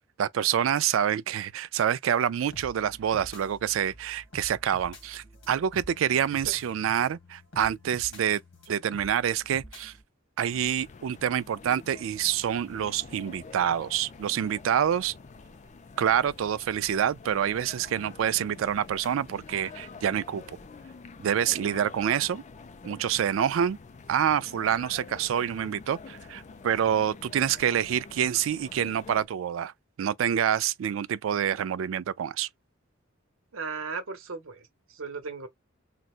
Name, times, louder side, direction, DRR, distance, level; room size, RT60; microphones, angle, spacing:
voice 1, 0.2-8.4 8.7-9.9 10.4-15.1 16.0-20.4 21.2-22.4 22.8-23.8 24.1-29.7 30.0-32.5, right 9 dB, 70° right, 0.3 m, -27 dB
sound 1, 2.4-10.0, left 1 dB, 75° left, 1.6 m, -48 dB
sound 2, 10.5-29.3, left 4 dB, 35° left, 0.4 m, -47 dB
voice 2, 33.5-34.6 34.9-35.5, right 4 dB, 90° right, 1.0 m, -36 dB
3.9 x 2.2 x 2.4 m
head